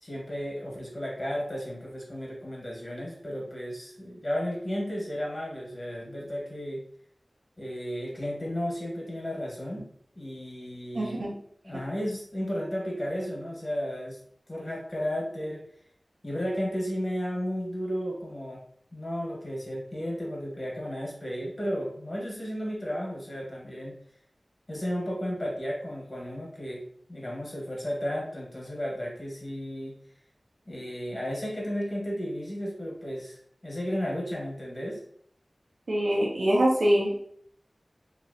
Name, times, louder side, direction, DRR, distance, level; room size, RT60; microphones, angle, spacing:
voice 1, 0.0-6.8 7.6-9.9 10.1-11.4 11.6-14.2 14.5-15.6 16.2-18.6 18.9-23.9 24.7-26.8 27.1-29.9 30.6-33.4 33.6-35.0, equal, 50° left, -3 dB, 1.4 m, -33 dB
voice 2, 10.9-11.3 35.9-37.2, equal, 85° right, -4 dB, 0.7 m, -24 dB
2.9 x 2.9 x 2.8 m, 0.63 s
wide cardioid pair, 40°, 0 cm